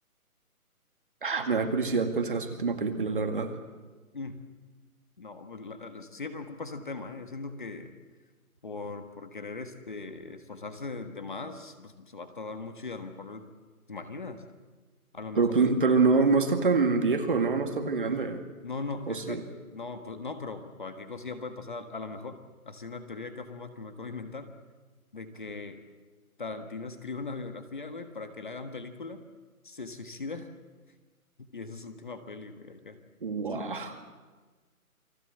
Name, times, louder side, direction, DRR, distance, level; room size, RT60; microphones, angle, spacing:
voice 1, 1.2-3.5 15.4-18.4 19.1-19.4 33.2-33.9, right 4 dB, 35° right, 6 dB, 2.1 m, -26 dB
voice 2, 4.1-4.4 5.2-7.9 8.6-13.5 13.9-14.4 15.1-15.5 18.6-19.4 19.7-22.4 22.6-24.5 25.1-25.8 26.4-29.2 29.6-30.5 31.4-33.0 33.5-33.7, left 3 dB, 35° left, 8 dB, 1.5 m, -39 dB
28.5 x 21.5 x 7.9 m, 1.3 s
hypercardioid pair, 175°, 44 cm